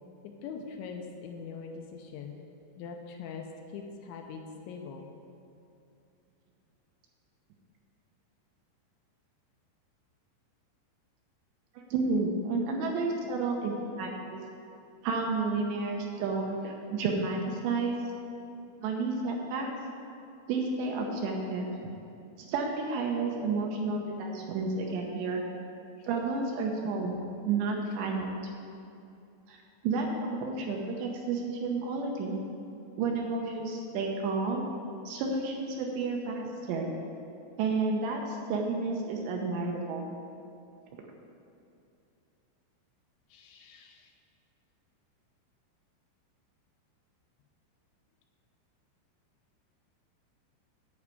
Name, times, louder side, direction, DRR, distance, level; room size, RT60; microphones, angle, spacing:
voice 1, 0.2-2.4 2.8-3.5 3.7-5.0 12.5-12.7 13.5-13.6 26.0-26.1 43.3-44.1, left 6 dB, 80° left, 3 dB, 2.9 m, -42 dB
voice 2, 11.9-14.4 15.0-18.0 18.8-19.7 20.5-21.7 22.5-25.4 26.1-27.2 27.4-28.3 29.5-29.6 29.8-32.4 33.0-34.7 35.1-37.0 37.6-40.0, right 3 dB, 75° right, 1 dB, 2.9 m, -31 dB
11.0 x 4.8 x 8.3 m, 2.7 s
omnidirectional pair, 5.6 m